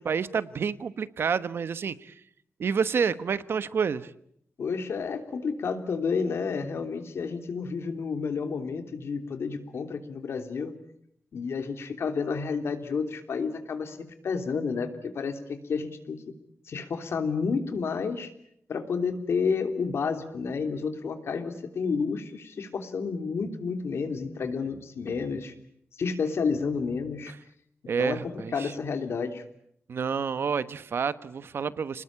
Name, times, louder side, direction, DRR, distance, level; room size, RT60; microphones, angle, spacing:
voice 1, 0.0-2.1 2.6-4.1 27.3-27.4 27.9-28.7 29.9-32.0, right 6 dB, 65° right, 14 dB, 1.1 m, -29 dB
voice 2, 4.6-10.7 11.3-14.0 14.2-16.3 16.7-18.3 18.7-25.5 26.0-27.3 28.0-29.4, left 5 dB, 75° left, 7 dB, 3.2 m, -30 dB
30.0 x 20.5 x 8.8 m, 0.71 s
wide cardioid pair, 165°, 4 cm